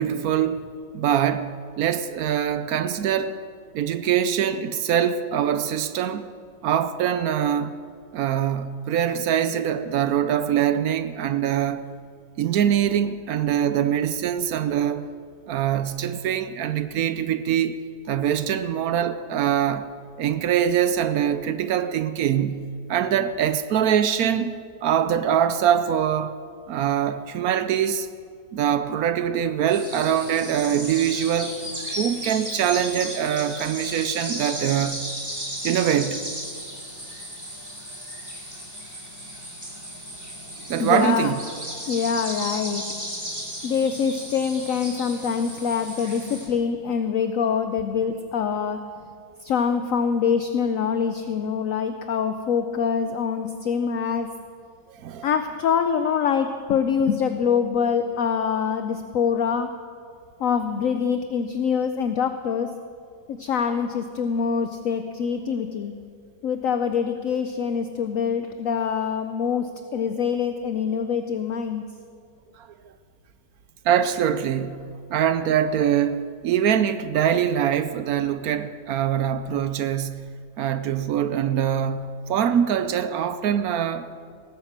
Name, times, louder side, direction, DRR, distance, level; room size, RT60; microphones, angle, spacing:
voice 1, 0.0-3.4 3.7-6.3 6.6-7.8 8.1-11.8 12.4-15.1 15.5-17.8 18.1-19.9 20.2-24.5 24.8-26.4 26.7-28.1 28.5-31.6 32.0-35.1 35.6-36.3 40.7-41.4 54.9-55.3 73.8-80.3 80.6-84.1, right 9 dB, 70° right, 1.0 m, -23 dB
sound 1, 29.7-46.5, equal, 10° right, 3.6 m, -35 dB
voice 2, 40.8-41.3 41.9-42.8 43.6-48.8 49.4-54.3 55.2-59.7 60.4-62.7 63.3-65.9 66.4-71.8, left 6 dB, 65° left, 0.9 m, -24 dB
18.0 x 9.6 x 7.4 m
omnidirectional pair, 1.9 m